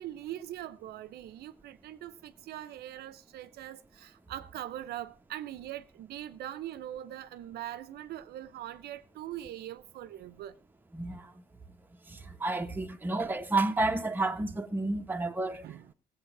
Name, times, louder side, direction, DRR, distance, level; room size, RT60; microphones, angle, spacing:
voice 1, 0.0-10.6 15.0-15.1 15.4-15.9, right 12 dB, 70° right, 0.8 m, -42 dB
voice 2, 10.9-11.3 12.1-15.7, right 2 dB, 10° right, 1.3 m, -31 dB
16.5 x 8.2 x 6.0 m
cardioid pair, 110°, 17 cm